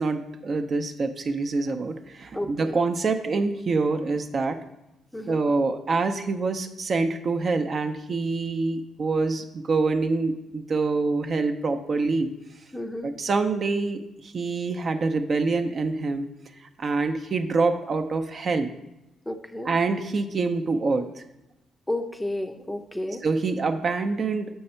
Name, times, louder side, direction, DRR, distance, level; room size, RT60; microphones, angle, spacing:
voice 1, 0.0-4.6 5.3-12.3 13.0-16.3 16.6-18.7 19.6-21.1 23.2-24.5, right 3 dB, 45° right, 7 dB, 0.6 m, -26 dB
voice 2, 2.3-2.8 5.1-5.4 12.7-13.1 19.3-19.7 21.9-23.2, left 1 dB, 5° left, 6 dB, 0.5 m, -31 dB
6.7 x 5.4 x 4.3 m, 0.93 s
cardioid pair, 90°, 0 cm